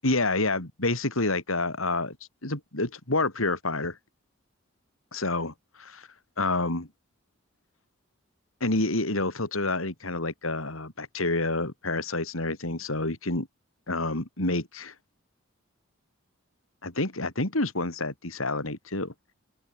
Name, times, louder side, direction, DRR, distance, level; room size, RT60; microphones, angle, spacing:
voice 1, 0.0-2.2 2.4-4.0 5.1-6.1 6.4-6.9 8.6-13.5 13.9-14.9 16.8-19.1, left 2 dB, 85° left, 4.4 m, -28 dB
open air
head